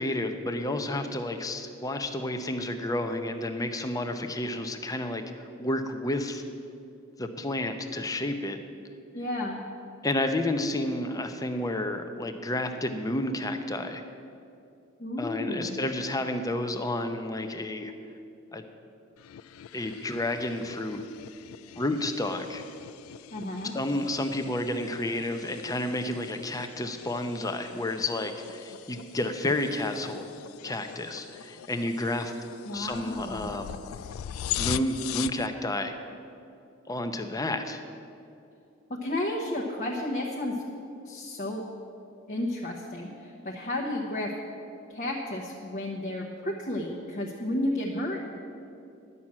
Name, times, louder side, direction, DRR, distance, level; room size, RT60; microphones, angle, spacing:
voice 1, 0.0-6.4 7.2-8.6 10.0-14.0 15.2-17.9 18.5-18.7 19.7-21.0 21.8-22.6 23.7-30.3 30.6-32.3 32.7-33.8 34.6-35.9 36.9-37.8, left 1 dB, 15° left, 7 dB, 0.7 m, -31 dB
voice 2, 9.1-9.6 15.0-15.8 23.3-23.8 32.6-33.5 39.0-40.6 41.0-41.6 42.3-44.3 44.9-48.2, left 1 dB, 40° left, -2 dB, 1.0 m, -32 dB
sound 1, 19.2-35.5, left 11 dB, 85° left, 0.3 m, -41 dB
11.0 x 6.0 x 8.6 m, 2.6 s
head